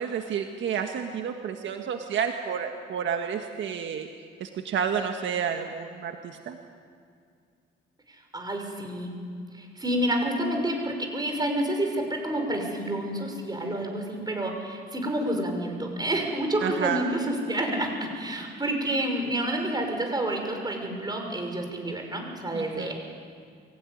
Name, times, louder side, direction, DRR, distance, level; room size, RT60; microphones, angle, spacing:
voice 1, 0.0-4.1 4.4-6.6 16.6-17.0 22.5-22.9, right 7 dB, 70° right, 5 dB, 1.6 m, -30 dB
voice 2, 8.1-9.1 9.5-22.9, right 1 dB, 20° right, 2 dB, 5.8 m, -29 dB
23.5 x 16.0 x 9.9 m, 2.2 s
cardioid pair, 90°, 20 cm